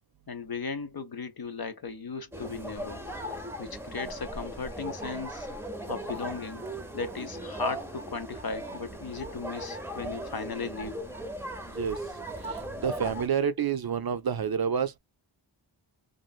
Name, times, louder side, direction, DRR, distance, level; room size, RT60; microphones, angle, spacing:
voice 1, 0.3-3.1 3.6-5.5 5.9-6.6 6.9-11.0, left 4 dB, 50° left, 0.7 m, -36 dB
sound 1, 2.3-13.3, right 1 dB, 5° right, 0.6 m, -38 dB
voice 2, 12.5-15.0, right 7 dB, 55° right, 0.5 m, -29 dB
3.1 x 2.6 x 2.3 m
wide cardioid pair, 60°, 46 cm